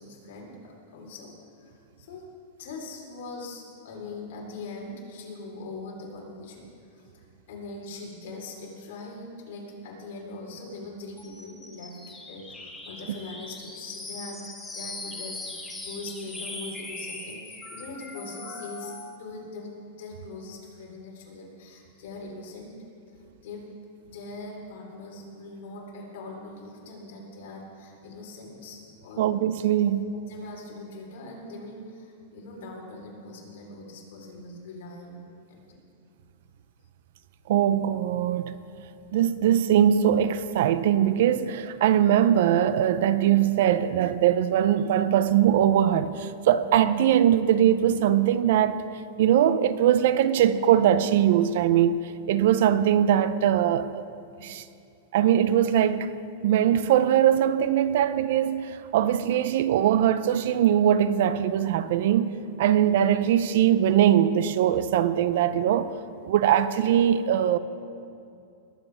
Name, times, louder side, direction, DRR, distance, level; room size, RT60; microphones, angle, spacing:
voice 1, 0.0-2.3 2.6-22.7 23.1-23.7 24.1-29.2 29.8-29.9 30.3-35.2 35.5-35.8, left 2 dB, 65° left, 3.7 m, -41 dB
sound 1, 11.2-19.2, left 2 dB, 10° left, 1.5 m, -40 dB
voice 2, 29.2-30.1 37.5-38.5 39.1-48.8 49.2-54.0 54.4-54.6 55.1-56.1 56.4-65.9 66.2-67.6, right 10 dB, 65° right, 0.5 m, -21 dB
20.5 x 8.5 x 4.8 m
supercardioid pair, 160°, 0 cm